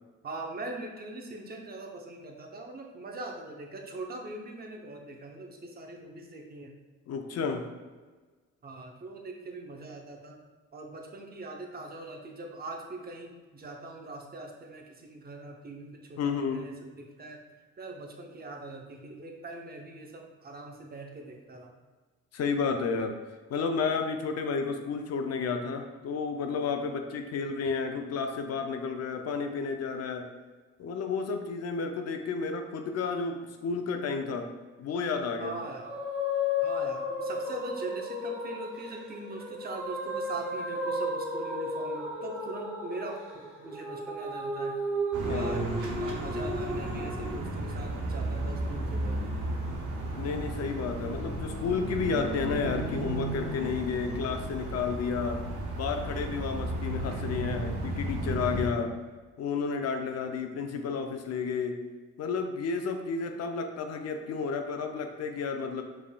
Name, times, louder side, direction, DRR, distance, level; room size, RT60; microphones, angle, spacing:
voice 1, 0.2-6.7 8.6-10.4 10.7-17.4 17.8-21.7 35.4-36.0 36.6-44.8 45.2-49.2, right 2 dB, 30° right, 2 dB, 0.7 m, -42 dB
voice 2, 7.1-7.7 16.2-16.6 22.3-23.1 23.5-30.3 30.8-34.5 34.8-35.6 45.2-45.8 50.2-55.4 55.7-58.9 59.4-61.8 62.2-65.8, left 5 dB, 55° left, 5 dB, 0.5 m, -31 dB
sound 1, 35.6-47.4, left 1 dB, 5° right, 1.3 m, -34 dB
sound 2, 45.1-58.7, right 1 dB, 80° right, 1.0 m, -34 dB
5.0 x 3.4 x 2.2 m, 1.4 s
cardioid pair, 90°, 30 cm